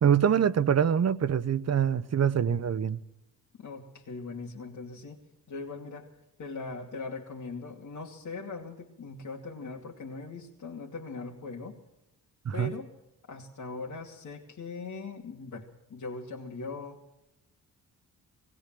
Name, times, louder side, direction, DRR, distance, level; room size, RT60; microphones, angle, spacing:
voice 1, 0.0-3.0 12.4-12.7, right 8 dB, 45° right, 1.0 m, -24 dB
voice 2, 3.6-11.8 12.5-12.9 13.3-17.1, left 3 dB, 55° left, 2.6 m, -40 dB
18.5 x 18.5 x 7.7 m
supercardioid pair, 60°, 36 cm